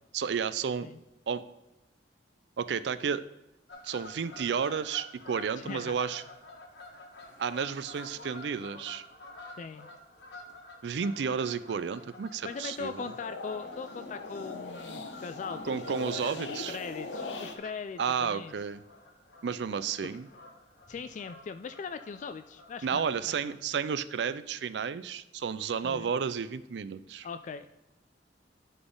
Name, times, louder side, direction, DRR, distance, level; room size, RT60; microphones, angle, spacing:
voice 1, 0.1-0.9 1.3-1.4 2.6-3.2 3.8-6.2 7.4-9.0 10.8-13.0 15.6-16.8 18.0-18.8 19.4-20.3 22.8-27.3, right 6 dB, 70° right, 15 dB, 0.4 m, -32 dB
Fowl / Bird vocalization bird call bird song, 3.7-23.6, left 1 dB, 70° left, 1.5 m, -50 dB
voice 2, 5.6-6.0 9.6-9.9 12.4-18.5 20.9-23.5 25.8-26.1 27.2-27.7, left 5 dB, 45° left, 10 dB, 0.3 m, -40 dB
sound 1, 12.3-17.6, left 3 dB, 85° left, 1.0 m, -41 dB
11.0 x 4.1 x 3.7 m, 0.98 s
head